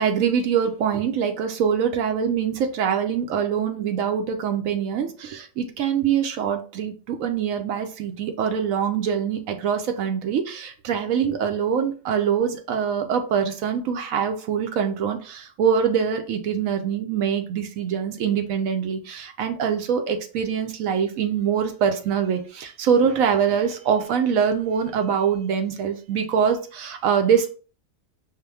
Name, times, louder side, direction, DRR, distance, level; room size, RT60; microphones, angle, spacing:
voice 1, 0.0-27.5, right 7 dB, 80° right, 5 dB, 1.0 m, -24 dB
5.5 x 2.2 x 3.3 m, 0.37 s
omnidirectional pair, 1.4 m